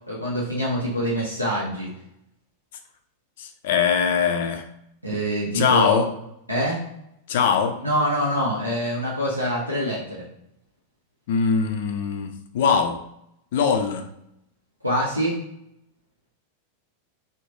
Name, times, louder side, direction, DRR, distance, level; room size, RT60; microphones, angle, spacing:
voice 1, 0.1-1.9 5.0-6.1 6.5-6.8 7.8-10.2 14.8-15.4, equal, 85° right, 0.6 m, -25 dB
voice 2, 3.4-4.7 5.5-6.1 7.3-7.8 11.3-13.0 13.5-14.1, left 6 dB, 55° left, 0.4 m, -22 dB
3.1 x 2.1 x 2.6 m
figure-of-eight pair, 90°, 0 cm